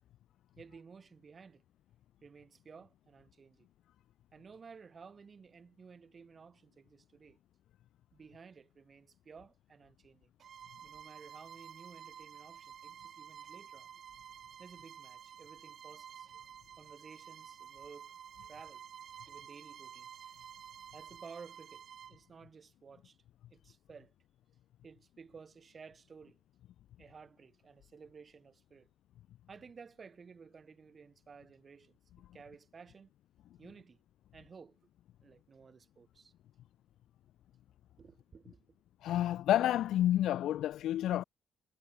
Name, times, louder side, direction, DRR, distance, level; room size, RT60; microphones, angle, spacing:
voice 1, 0.6-1.6 2.2-3.7 4.3-7.4 8.1-10.3 10.8-13.9 14.6-16.3 16.8-18.1 18.5-18.9 19.3-20.1 20.9-23.2 23.5-24.1 24.8-26.4 27.0-28.9 29.5-33.1 33.6-34.0 34.3-34.8 35.2-36.3 38.0-38.6, right 5 dB, 30° right, 4.6 m, -55 dB
Bowed string instrument, 10.4-22.2, right 8 dB, 45° right, 5.0 m, -51 dB
voice 2, 39.0-41.2, left 12 dB, 70° left, 0.3 m, -29 dB
cardioid pair, 155°, 0 cm